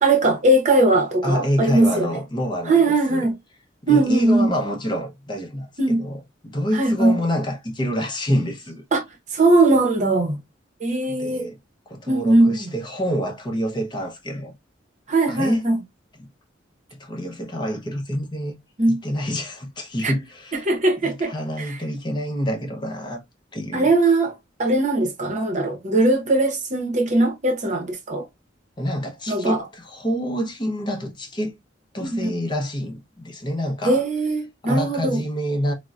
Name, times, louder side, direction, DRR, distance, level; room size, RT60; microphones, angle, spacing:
voice 1, 0.0-2.2 2.7-3.3 3.9-4.5 5.8-6.0 6.7-7.2 8.9-9.0 9.3-10.4 10.8-11.5 12.1-12.7 15.1-15.8 18.8-19.0 20.0-20.1 20.7-21.8 23.7-24.3 24.6-28.3 29.3-29.6 32.0-32.4 33.8-35.2, right 2 dB, 40° right, 0.7 m, -20 dB
voice 2, 1.2-2.8 3.1-3.3 3.8-8.8 11.1-11.6 11.9-14.6 15.3-15.6 16.2-16.3 17.0-18.5 18.9-20.7 21.0-23.2 23.5-23.9 28.8-31.5 31.9-34.0 34.6-35.7, equal, 25° left, 0.6 m, -27 dB
3.7 x 2.1 x 2.3 m
head